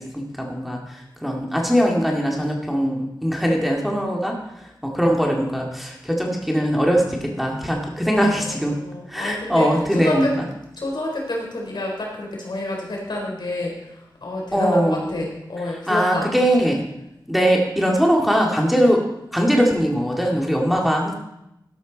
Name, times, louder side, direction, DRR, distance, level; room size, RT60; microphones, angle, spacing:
voice 1, 0.1-4.4 4.8-8.8 9.1-10.3 14.5-15.1 15.9-16.8 17.3-19.0 19.3-21.1, equal, ahead, -1 dB, 2.1 m, -21 dB
voice 2, 8.1-10.3 10.8-16.4, left 2 dB, 70° left, -1 dB, 4.0 m, -29 dB
12.5 x 11.5 x 4.0 m, 0.85 s
wide cardioid pair, 80°, 8 cm